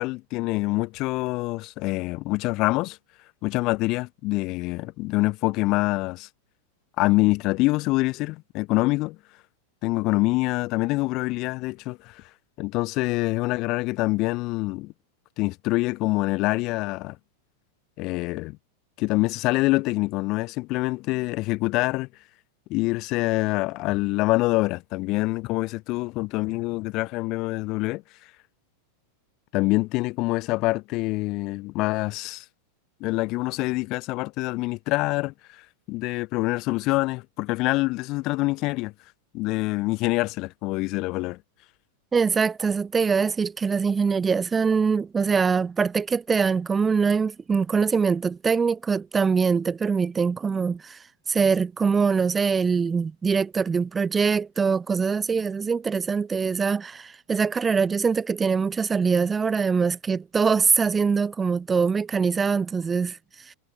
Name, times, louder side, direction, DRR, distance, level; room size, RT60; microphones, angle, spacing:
voice 1, 0.0-3.0 3.4-6.3 7.0-9.2 9.8-12.2 12.6-14.9 15.4-17.2 18.0-18.6 19.0-22.1 22.7-28.0 29.5-32.4 33.0-38.9 39.3-41.4, left 21 dB, 40° left, 0.9 m, -25 dB
voice 2, 42.1-63.5, right 5 dB, 15° right, 0.5 m, -23 dB
figure-of-eight pair, 90°, 0 cm